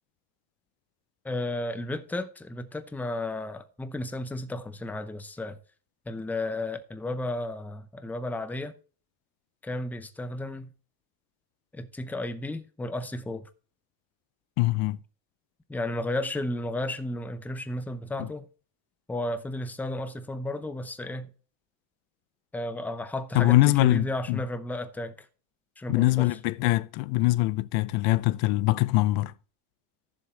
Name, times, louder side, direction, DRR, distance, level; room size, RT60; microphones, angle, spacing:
voice 1, 1.2-5.6 6.1-8.8 9.6-10.7 11.7-13.5 15.7-18.5 19.1-21.3 22.5-25.3 25.8-26.3, left 1 dB, 5° left, 0.6 m, -33 dB
voice 2, 14.6-15.0 18.2-18.3 23.3-24.4 25.9-29.3, left 19 dB, 65° left, 0.6 m, -23 dB
15.0 x 7.1 x 3.2 m
cardioid pair, 155°, 40 cm